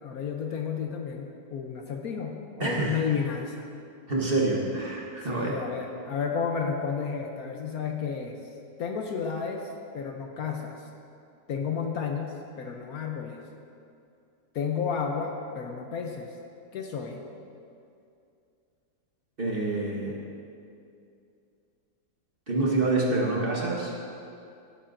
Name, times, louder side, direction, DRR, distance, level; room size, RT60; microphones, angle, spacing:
voice 1, 0.0-3.7 5.2-8.3 8.8-9.6 9.9-10.8 11.5-13.4 14.5-16.3 16.7-17.2, left 6 dB, 65° left, 2 dB, 1.1 m, -32 dB
voice 2, 2.6-3.0 4.1-5.5 19.4-20.2 22.5-23.9, right 2 dB, 35° right, -3 dB, 1.2 m, -27 dB
17.0 x 8.6 x 2.6 m, 2.5 s
omnidirectional pair, 1.9 m